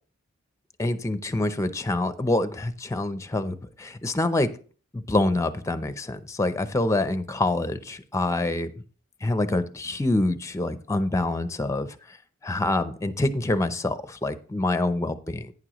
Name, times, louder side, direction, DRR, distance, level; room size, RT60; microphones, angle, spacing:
voice 1, 0.8-4.5 4.9-8.7 9.2-12.2 12.4-15.5, left 2 dB, 15° left, 11 dB, 0.6 m, -26 dB
11.0 x 9.5 x 3.0 m, 0.40 s
head